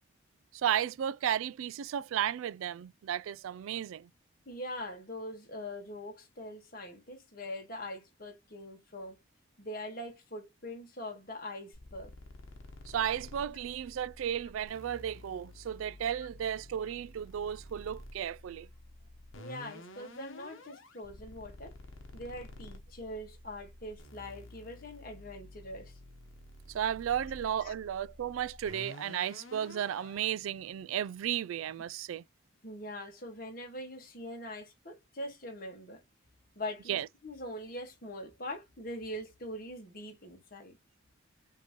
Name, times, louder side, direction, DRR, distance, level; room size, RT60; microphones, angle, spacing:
voice 1, 0.5-4.1 12.9-18.7 26.7-32.2 36.9-37.1, right 9 dB, 90° right, 0.3 m, -34 dB
voice 2, 4.5-9.2 9.6-12.1 19.4-21.8 22.1-26.0 27.6-27.7 32.6-36.0 36.6-40.8, left 1 dB, 45° left, 1.6 m, -43 dB
sound 1, 11.7-30.3, left 1 dB, 85° left, 1.1 m, -51 dB
5.8 x 2.9 x 3.0 m
head